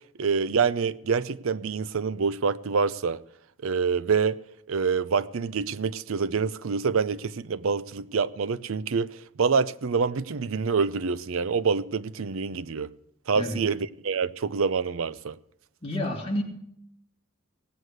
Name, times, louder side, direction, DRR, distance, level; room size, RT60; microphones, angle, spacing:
voice 1, 0.2-3.2 3.6-4.4 4.7-12.9 13.3-15.4, right 5 dB, 65° right, 0.5 m, -26 dB
voice 2, 15.8-16.4, left 1 dB, 25° left, 3.2 m, -29 dB
17.5 x 8.1 x 7.8 m
head